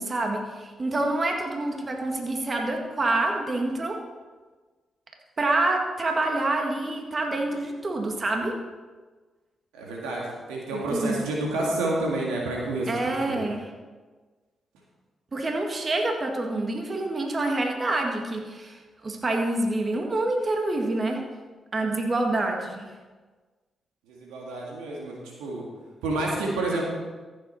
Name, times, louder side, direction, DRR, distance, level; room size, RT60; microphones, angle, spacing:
voice 1, 0.0-4.0 5.4-8.6 10.7-11.2 12.9-13.7 15.3-21.2 21.7-22.9, right 2 dB, 40° right, 2 dB, 1.8 m, -27 dB
voice 2, 9.7-13.4 24.1-25.7 26.0-26.8, right 2 dB, 85° right, -2 dB, 1.9 m, -29 dB
14.5 x 7.8 x 4.2 m, 1.3 s
hypercardioid pair, 45°, 0 cm